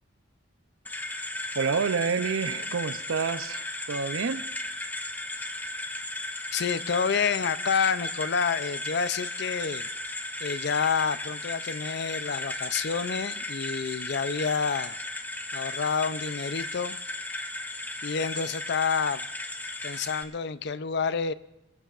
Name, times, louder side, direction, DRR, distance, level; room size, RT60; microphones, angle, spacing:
sound 1, 0.8-20.2, left 2 dB, 10° left, 0.7 m, -35 dB
voice 1, 1.5-4.5, right 5 dB, 85° right, 13 dB, 0.6 m, -28 dB
voice 2, 6.5-9.9 10.4-15.0 15.5-17.0 18.0-19.3 19.8-21.3, left 6 dB, 55° left, 14 dB, 0.5 m, -28 dB
22.0 x 16.0 x 2.5 m, 0.92 s
head